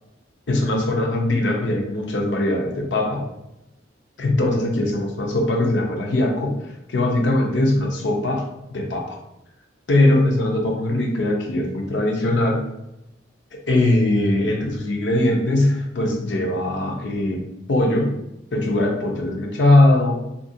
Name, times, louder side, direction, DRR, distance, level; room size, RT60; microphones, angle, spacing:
voice 1, 0.5-3.2 4.2-6.5 6.9-8.4 8.7-9.2 9.9-12.6 13.7-17.4 17.7-18.2 18.5-20.2, left 1 dB, 75° left, 1 dB, 0.6 m, -20 dB
2.8 x 2.5 x 2.6 m, 0.88 s
head